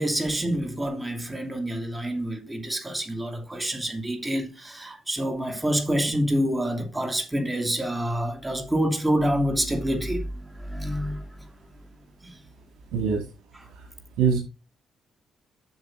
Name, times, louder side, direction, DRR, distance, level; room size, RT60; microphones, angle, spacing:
voice 1, 0.0-10.2 10.6-11.2, equal, 15° right, 2.5 m, -27 dB
voice 2, 12.9-13.2 13.8-13.9 14.2-14.4, right 6 dB, 90° right, 2.0 m, -22 dB
8.0 x 6.7 x 3.7 m
cardioid pair, 90°, 0 cm